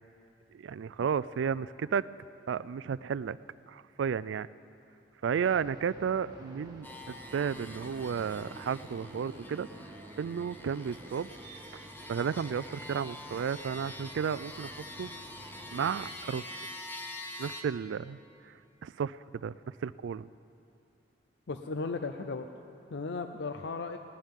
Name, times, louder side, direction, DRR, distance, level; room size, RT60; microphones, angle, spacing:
voice 1, 0.5-2.0 2.5-3.4 3.7-4.5 5.2-9.7 10.2-11.3 11.7-11.8 12.1-15.1 15.7-16.5 17.4-18.2 18.5-18.6 18.8-20.3, right 7 dB, 90° right, 17 dB, 0.3 m, -33 dB
sound 1, 5.3-16.1, right 1 dB, 20° right, 1.5 m, -50 dB
sound 2, 6.8-17.6, left 1 dB, 10° left, 0.7 m, -46 dB
voice 2, 21.5-22.5 22.9-24.0, left 4 dB, 75° left, 6 dB, 0.6 m, -36 dB
19.5 x 18.5 x 3.7 m, 2.6 s
head